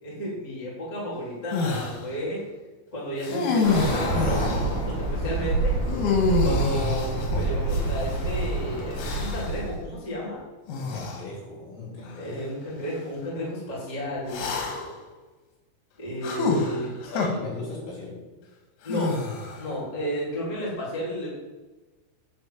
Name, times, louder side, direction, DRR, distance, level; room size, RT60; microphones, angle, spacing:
voice 1, 0.0-2.4 2.9-5.8 6.4-10.4 12.2-14.5 16.0-16.9 18.8-19.2 19.6-21.3, equal, 10° left, -6 dB, 2.6 m, -32 dB
sound 1, 1.5-2.0 3.2-4.7 5.9-8.2 9.0-9.6 10.7-11.2 12.0-12.2 14.3-15.0 16.2-17.3 18.9-19.7, left 4 dB, 90° left, 4.5 m, -27 dB
Bird, 3.6-9.8, right 2 dB, 45° left, 3.2 m, -27 dB
voice 2, 10.8-12.4 17.1-18.2, left 3 dB, 65° left, -6 dB, 5.9 m, -37 dB
11.0 x 5.5 x 7.4 m, 1.2 s
omnidirectional pair, 6.0 m